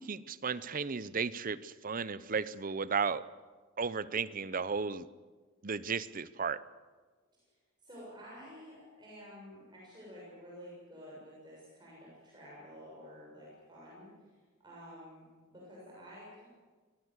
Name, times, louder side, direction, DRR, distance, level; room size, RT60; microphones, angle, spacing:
voice 1, 0.0-3.3 3.8-5.1 5.6-6.6, right 5 dB, 40° right, 16 dB, 0.7 m, -34 dB
voice 2, 7.8-14.1 14.6-16.4, equal, 20° right, -6 dB, 7.1 m, -51 dB
25.0 x 18.0 x 8.2 m, 1.4 s
head